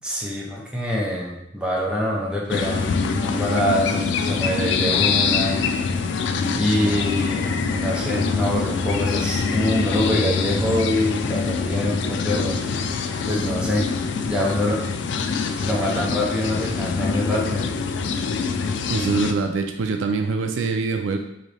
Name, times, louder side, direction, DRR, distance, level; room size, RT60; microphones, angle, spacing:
voice 1, 0.0-5.6 6.5-13.0 13.3-14.8 15.6-17.7, left 1 dB, 5° right, -4 dB, 0.6 m, -25 dB
sound 1, 2.5-19.3, left 5 dB, 65° left, 0.3 m, -24 dB
voice 2, 18.9-21.2, right 4 dB, 85° right, 5 dB, 0.4 m, -24 dB
3.2 x 2.7 x 4.0 m, 0.78 s
head